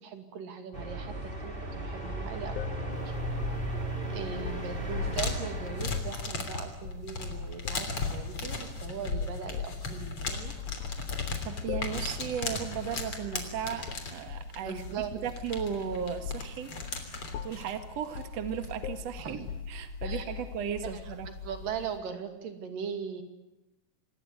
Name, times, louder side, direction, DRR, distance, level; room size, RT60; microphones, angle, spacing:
voice 1, 0.0-3.0 4.1-10.5 14.6-15.2 19.2-19.5 20.0-20.3 21.0-21.1 21.4-23.2, right 7 dB, 85° right, 6 dB, 4.2 m, -39 dB
sound 1, 0.7-5.8, right 2 dB, 15° right, 3.0 m, -36 dB
sound 2, 2.5-5.3 5.9-6.2 6.8-7.3 7.6-8.2 8.8-9.0 9.5-9.9 10.3-11.1 11.7-12.0 12.3-12.6 12.8-13.1 13.9-14.5 15.1-15.9 16.2-16.5 16.8-17.0 17.3-17.7 18.1-18.4 18.8-20.5, left 8 dB, 70° left, 2.5 m, -40 dB
sound 3, 2.9-22.0, left 4 dB, 40° left, 4.0 m, -38 dB
voice 2, 11.5-16.7 17.4-19.4 19.7-21.3, right 8 dB, 55° right, 8 dB, 2.7 m, -36 dB
26.5 x 20.0 x 9.6 m, 0.96 s
omnidirectional pair, 3.7 m